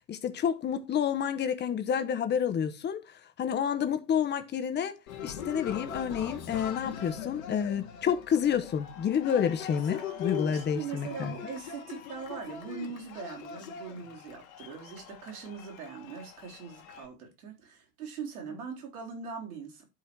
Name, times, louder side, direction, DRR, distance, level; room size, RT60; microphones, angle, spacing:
voice 1, 0.1-5.0 5.2-11.3, left 8 dB, 20° left, 1.1 m, -29 dB
Cheering, 5.1-17.1, left 8 dB, 55° left, 2.0 m, -41 dB
voice 2, 10.3-19.8, right 5 dB, 60° right, 3.8 m, -41 dB
11.5 x 4.7 x 4.7 m
figure-of-eight pair, 85°, 48 cm